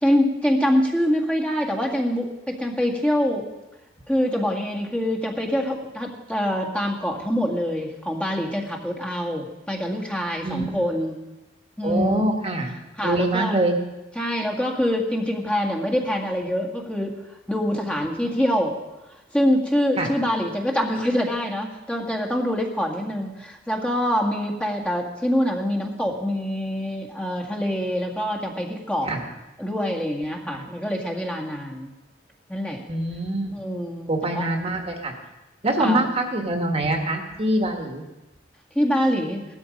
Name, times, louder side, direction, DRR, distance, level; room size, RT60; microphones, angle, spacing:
voice 1, 0.0-3.5 4.1-11.2 11.8-12.2 13.0-13.6 14.2-18.8 19.3-29.1 29.6-31.9 32.5-32.8 33.5-34.5 35.8-36.0 38.8-39.5, equal, 5° left, -1 dB, 1.9 m, -25 dB
voice 2, 10.4-10.8 11.8-12.7 13.0-13.7 20.0-20.1 29.1-29.2 32.9-33.6 34.1-35.1 35.6-38.0, right 1 dB, 35° right, 3 dB, 1.9 m, -24 dB
17.0 x 12.5 x 5.3 m, 1.0 s
head